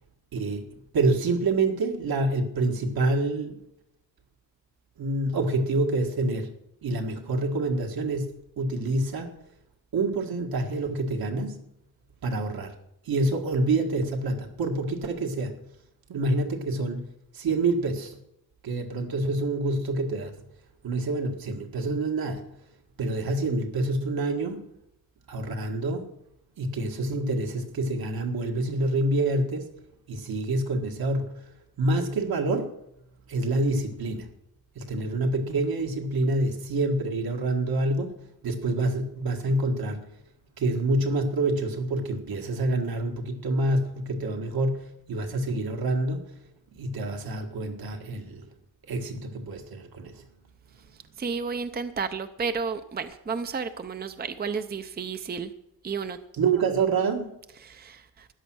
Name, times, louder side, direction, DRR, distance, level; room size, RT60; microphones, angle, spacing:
voice 1, 0.3-0.7 0.9-3.6 5.0-6.5 6.8-9.3 9.9-11.6 12.2-12.8 13.1-15.6 16.1-17.1 17.3-18.2 18.6-20.4 20.8-22.6 23.0-24.7 25.3-26.1 26.6-29.7 30.1-31.5 31.8-32.7 33.3-34.3 34.8-38.1 38.4-40.1 40.6-46.4 46.7-48.5 48.9-50.2 56.3-57.3, right 2 dB, 70° right, 1.9 m, -27 dB
voice 2, 51.2-55.5 55.8-56.2 57.6-58.0, right 5 dB, 25° right, 0.7 m, -32 dB
13.5 x 9.9 x 6.3 m
wide cardioid pair, 120°, 37 cm